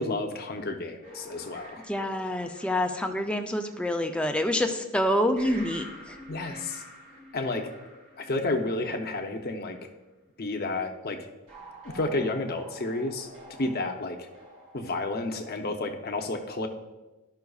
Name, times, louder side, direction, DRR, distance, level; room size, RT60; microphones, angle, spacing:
voice 1, 0.0-1.8 6.3-6.8 7.3-7.7 8.2-9.8 10.4-11.2 11.9-13.3 13.6-14.2 14.7-16.7, left 2 dB, 45° left, 4 dB, 0.6 m, -31 dB
sound 1, 1.0-4.7 5.4-9.8 11.5-15.8, right 1 dB, 30° right, 1.5 m, -49 dB
voice 2, 1.9-6.2, left 1 dB, 5° left, 4 dB, 0.4 m, -27 dB
12.5 x 5.7 x 2.3 m, 1.1 s
head